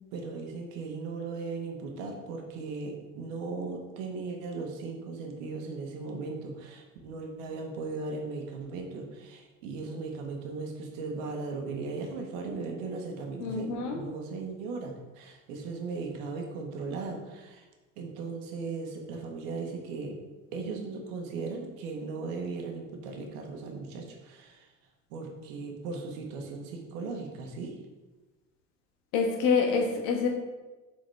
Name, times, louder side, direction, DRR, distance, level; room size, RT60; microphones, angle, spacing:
voice 1, 0.1-17.6 18.0-20.1 20.5-24.7 25.1-27.8, right 4 dB, 80° right, 2 dB, 1.3 m, -37 dB
voice 2, 13.4-14.0 29.1-30.3, left 5 dB, 70° left, 1 dB, 1.5 m, -26 dB
7.3 x 4.1 x 3.4 m, 1.2 s
hypercardioid pair, 70°, 39 cm